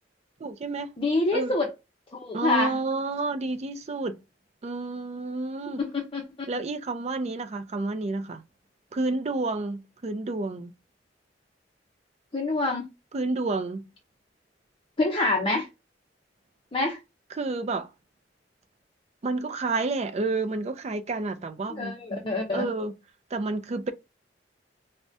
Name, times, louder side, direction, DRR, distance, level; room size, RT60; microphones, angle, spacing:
voice 1, 0.4-0.9 1.3-1.5 2.3-4.2 4.6-5.8 6.5-8.4 8.9-10.7 13.1-13.9 17.3-17.9 19.2-22.2 22.5-22.9 23.3-23.9, right 3 dB, 35° right, 0.4 m, -30 dB
voice 2, 1.0-1.7 2.1-2.8 5.8-6.3 12.3-12.9 15.0-15.7 16.7-17.0 21.7-22.7, left 2 dB, 30° left, 0.6 m, -26 dB
4.6 x 2.1 x 2.6 m
head